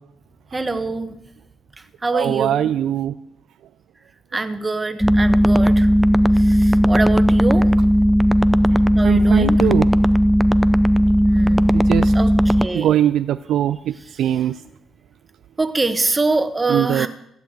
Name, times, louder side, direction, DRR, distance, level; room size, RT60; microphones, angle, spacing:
voice 1, 0.5-1.2 2.0-2.7 4.3-5.9 6.3-7.7 8.9-9.6 11.2-13.0 15.6-17.1, right 3 dB, 20° right, 9 dB, 1.5 m, -24 dB
voice 2, 2.1-3.1 9.0-9.9 11.7-12.1 12.7-14.6 16.7-17.1, right 11 dB, 80° right, 12 dB, 0.4 m, -20 dB
sound 1, 5.0-12.7, equal, ahead, 0.6 m, -15 dB
16.0 x 8.1 x 8.3 m, 0.78 s
cardioid pair, 90°, 0 cm